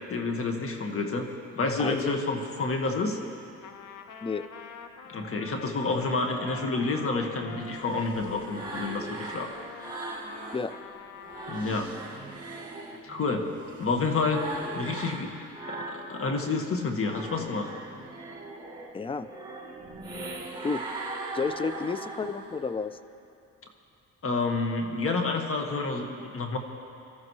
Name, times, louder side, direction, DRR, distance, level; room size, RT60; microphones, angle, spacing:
voice 1, 0.1-3.2 5.1-9.5 11.5-12.0 13.0-13.5 13.8-14.5 14.7-15.4 15.7-17.7 24.2-26.6, left 3 dB, 45° left, 3 dB, 1.8 m, -29 dB
Trumpet, 3.6-11.7, left 7 dB, 80° left, 1.0 m, -46 dB
sound 1, 7.3-10.7 11.1-16.5 16.9-22.7, right 2 dB, 15° right, 4.6 m, -40 dB
voice 2, 18.9-19.3 20.6-20.8 21.3-23.0, left 4 dB, 20° left, 13 dB, 0.5 m, -31 dB
25.0 x 14.0 x 3.2 m, 2.6 s
cardioid pair, 90°, 30 cm